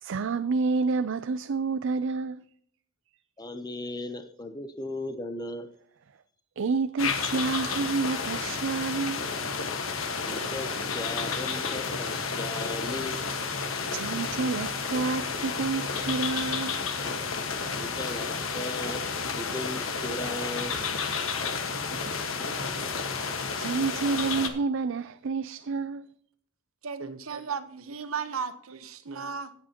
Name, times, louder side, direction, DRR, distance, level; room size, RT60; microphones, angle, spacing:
voice 1, 0.0-2.4 6.6-9.3 13.8-16.8 21.6-22.2 23.2-26.0, right 4 dB, 65° right, 0.5 m, -29 dB
voice 2, 3.4-5.7 10.2-13.2 17.8-20.8 22.2-22.5, left 1 dB, 20° left, 0.7 m, -37 dB
sound 1, 7.0-24.5, left 5 dB, 70° left, 1.5 m, -31 dB
voice 3, 26.8-29.5, right 6 dB, 85° right, 1.0 m, -35 dB
16.5 x 8.6 x 2.9 m
head